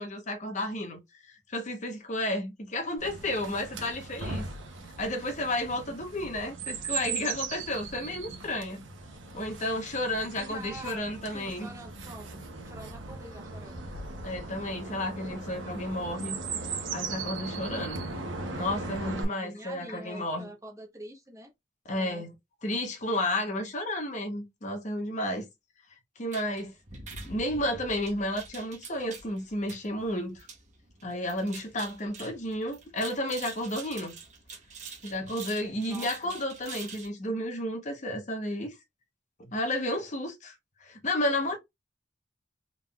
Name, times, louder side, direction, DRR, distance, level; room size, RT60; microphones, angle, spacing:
voice 1, 0.0-4.5 5.0-8.8 9.3-11.7 14.2-16.4 16.9-18.0 18.5-20.5 21.9-22.3 22.6-25.5 26.2-26.7 27.3-30.5 31.0-34.1 35.0-38.8 39.4-40.5 40.8-41.6, left 1 dB, 40° left, 0.9 m, -32 dB
Chirp tweet, 3.0-19.2, right 4 dB, 85° right, 1.0 m, -38 dB
voice 2, 10.4-11.0 11.3-13.9 19.1-21.5 21.9-22.2 35.8-36.3, right 1 dB, 15° right, 0.9 m, -46 dB
sound 1, 26.3-37.1, right 4 dB, 40° right, 1.1 m, -45 dB
3.7 x 3.7 x 2.3 m
head